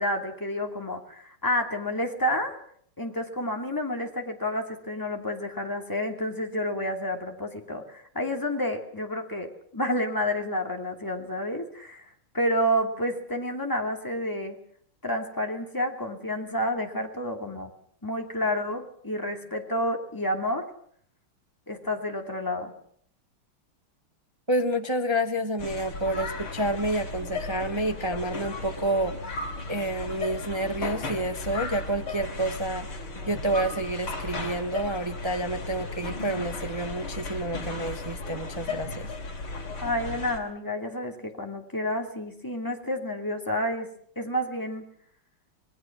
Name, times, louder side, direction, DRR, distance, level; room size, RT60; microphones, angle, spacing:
voice 1, 0.0-2.6 3.0-12.1 12.3-14.6 15.0-17.7 18.0-20.6 21.7-22.7 39.8-43.9 44.2-44.8, equal, 10° left, 3 dB, 2.5 m, -29 dB
voice 2, 24.5-29.1 29.7-39.1, right 1 dB, 20° right, 7 dB, 0.7 m, -29 dB
sound 1, 25.6-40.4, left 3 dB, 80° left, 4.4 m, -35 dB
27.5 x 20.0 x 6.1 m, 0.64 s
omnidirectional pair, 2.3 m